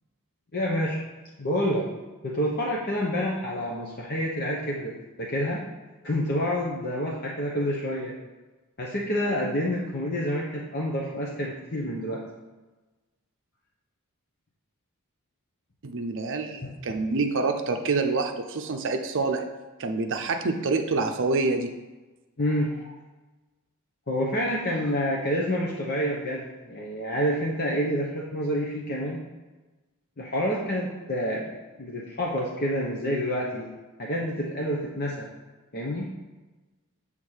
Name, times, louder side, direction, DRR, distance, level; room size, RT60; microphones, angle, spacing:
voice 1, 0.5-1.0 1.4-1.9 2.2-5.6 6.0-8.1 8.8-12.2 16.6-16.7 22.4-22.9 24.1-29.2 30.2-31.5 31.8-33.7 34.0-35.3 35.7-36.1, equal, 45° left, -3 dB, 1.0 m, -28 dB
voice 2, 15.8-19.4 19.8-21.7, right 3 dB, 60° right, 5 dB, 0.6 m, -27 dB
7.3 x 3.7 x 6.4 m, 1.2 s
head